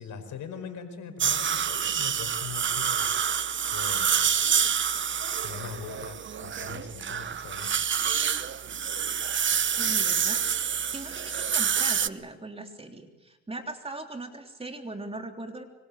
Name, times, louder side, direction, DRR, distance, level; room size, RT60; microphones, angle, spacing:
voice 1, 0.0-3.1 3.7-4.3 5.4-7.7, left 6 dB, 75° left, 7 dB, 5.1 m, -41 dB
sound 1, 1.2-12.1, right 8 dB, 40° right, 0.9 m, -27 dB
voice 2, 9.8-10.4 10.9-15.6, right 2 dB, 20° right, 5 dB, 3.4 m, -39 dB
25.5 x 24.5 x 8.6 m, 1.1 s
cardioid pair, 90°, 30 cm